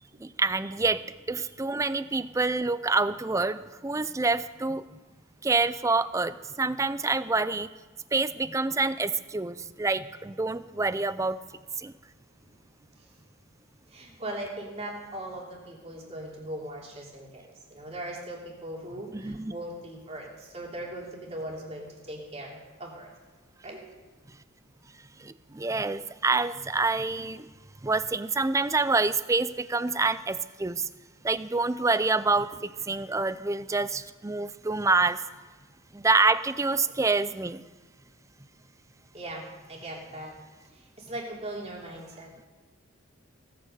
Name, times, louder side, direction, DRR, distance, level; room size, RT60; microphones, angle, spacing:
voice 1, 0.2-1.0 1.3-4.8 5.4-7.7 8.1-11.4 11.8-11.9 19.1-19.5 25.2-27.5 27.8-30.9 31.2-32.5 32.9-35.2 35.9-37.6, right 3 dB, 15° right, 15 dB, 0.4 m, -27 dB
voice 2, 13.9-23.1 23.6-23.8 39.1-40.4 40.7-42.5, right 1 dB, 30° right, -2 dB, 3.1 m, -39 dB
17.5 x 9.1 x 6.7 m, 1.2 s
head